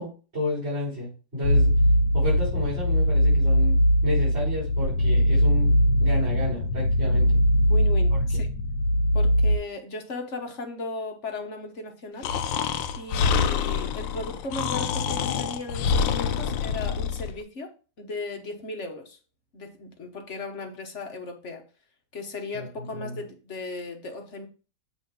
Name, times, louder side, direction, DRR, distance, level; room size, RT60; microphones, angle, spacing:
voice 1, 0.0-1.7 2.1-5.7 6.0-7.4 8.1-8.2 22.5-23.2, left 1 dB, 30° right, -10 dB, 4.9 m, -31 dB
sound 1, 1.4-9.6, equal, 70° left, 1.5 m, -21 dB
voice 2, 7.7-8.5 9.1-12.3 13.0-19.2 19.5-21.6 22.1-24.5, left 3 dB, 45° left, 4 dB, 1.1 m, -36 dB
Breathing, 12.2-17.3, left 6 dB, 85° left, 1.3 m, -26 dB
8.2 x 3.3 x 5.2 m, 0.35 s
omnidirectional pair, 2.1 m